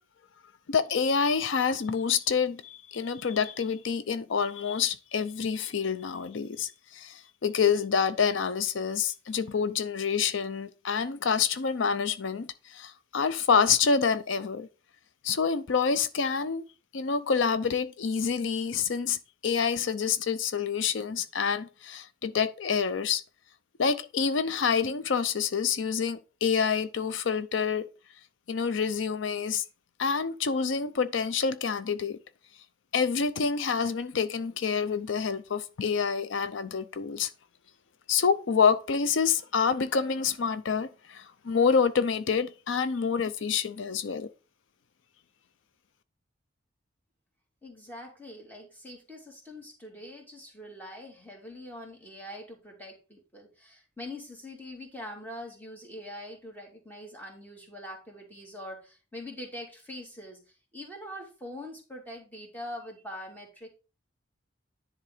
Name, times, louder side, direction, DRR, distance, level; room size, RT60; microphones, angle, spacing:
voice 1, 0.7-14.7 15.2-16.6 16.9-23.2 23.8-27.8 28.5-29.6 30.0-32.2 32.9-37.3 38.1-44.3, left 6 dB, 80° left, 0.5 m, -27 dB
voice 2, 47.6-63.7, left 1 dB, 10° left, 2.3 m, -43 dB
10.0 x 3.8 x 4.9 m
head